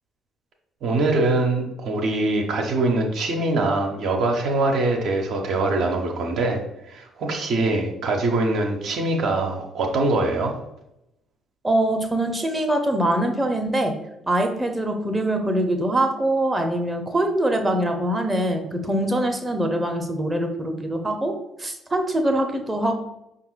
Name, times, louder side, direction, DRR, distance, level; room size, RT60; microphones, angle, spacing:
voice 1, 0.8-10.6, right 2 dB, 55° right, 1 dB, 0.5 m, -23 dB
voice 2, 11.6-13.9 14.3-23.0, right 1 dB, 15° right, 4 dB, 0.7 m, -23 dB
5.1 x 2.4 x 3.0 m, 0.86 s
figure-of-eight pair, 45°, 0 cm